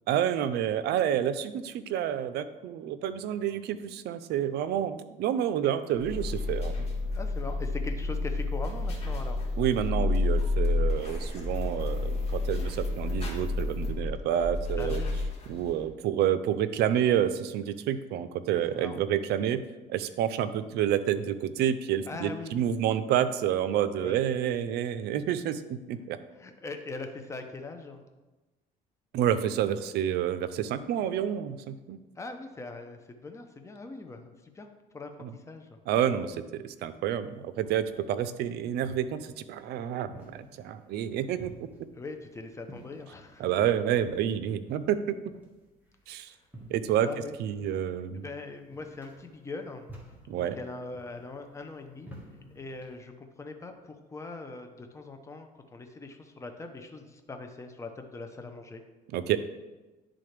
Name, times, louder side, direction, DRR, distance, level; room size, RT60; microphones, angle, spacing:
voice 1, 0.1-6.8 9.6-15.0 15.5-19.6 19.9-26.2 29.1-32.0 35.2-35.3 35.9-39.2 39.5-41.5 43.4-45.2 46.1-46.3 46.7-47.1 47.4-48.2 50.3-50.6 59.1-59.4, right 10 dB, 75° right, 12 dB, 0.5 m, -29 dB
sound 1, 5.9-15.8, left 2 dB, 35° left, 1.7 m, -30 dB
voice 2, 7.1-9.4 14.8-15.1 18.7-19.0 22.1-22.5 24.0-24.2 26.3-28.0 32.2-34.7 34.9-35.8 41.9-43.5 46.1-46.4 47.0-47.3 48.1-49.9 50.3-52.1 52.5-58.8, left 3 dB, 15° left, 5 dB, 0.7 m, -41 dB
sound 2, 37.1-53.0, equal, 10° right, 1.5 m, -52 dB
10.5 x 3.8 x 3.3 m, 1.1 s
cardioid pair, 110°, 17 cm